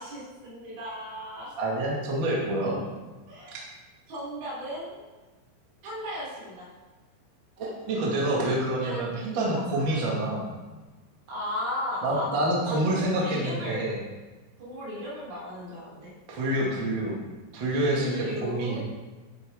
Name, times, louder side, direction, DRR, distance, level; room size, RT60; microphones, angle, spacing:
voice 1, 0.0-1.6 1.9-2.0 2.6-2.9 3.3-3.6 4.1-5.0 5.8-6.7 8.8-10.1 11.3-12.3 12.6-14.0 14.6-16.1 17.9-18.8, equal, 75° right, -7 dB, 6.1 m, -36 dB
voice 2, 1.5-2.8 3.5-3.6 7.6-10.4 12.0-14.0 16.3-17.1 17.5-18.8, right 1 dB, 55° right, -3 dB, 1.3 m, -27 dB
12.0 x 7.4 x 3.7 m, 1.2 s
omnidirectional pair, 5.7 m